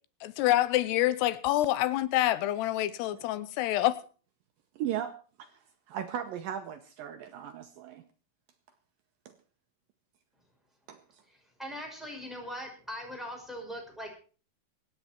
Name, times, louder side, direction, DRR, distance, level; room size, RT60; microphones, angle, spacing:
voice 1, 0.2-4.0, left 15 dB, 85° left, 16 dB, 2.9 m, -27 dB
voice 2, 4.8-5.1 5.4-5.5 5.9-8.0 10.9-11.0, right 10 dB, 70° right, 8 dB, 2.4 m, -36 dB
voice 3, 11.6-14.1, equal, ahead, 0 dB, 5.3 m, -40 dB
24.0 x 9.6 x 4.5 m, 0.38 s
omnidirectional pair, 4.7 m